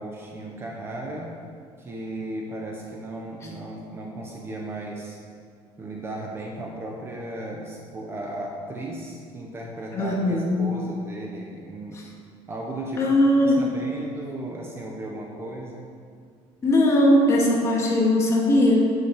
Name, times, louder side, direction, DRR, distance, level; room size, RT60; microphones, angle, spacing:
voice 1, 0.0-1.3 1.8-5.2 5.8-12.0 12.5-13.1 13.4-15.9, right 1 dB, 20° right, 0 dB, 1.2 m, -35 dB
voice 2, 9.9-10.5 13.0-13.7 16.6-18.9, left 1 dB, 25° left, -2 dB, 2.3 m, -19 dB
10.5 x 8.4 x 6.8 m, 2.1 s
cardioid pair, 165°, 11 cm